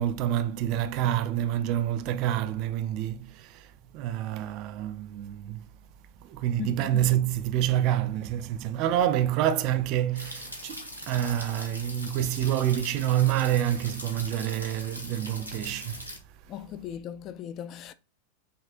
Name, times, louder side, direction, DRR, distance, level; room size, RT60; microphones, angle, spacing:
voice 1, 0.0-5.7 6.2-16.0, right 11 dB, 40° right, 0.3 m, -27 dB
voice 2, 6.6-7.0 16.5-17.9, left 9 dB, 35° left, 0.3 m, -37 dB
sound 1, 10.2-16.2, equal, 90° left, 0.9 m, -41 dB
5.2 x 2.7 x 2.4 m
figure-of-eight pair, 90°, 0 cm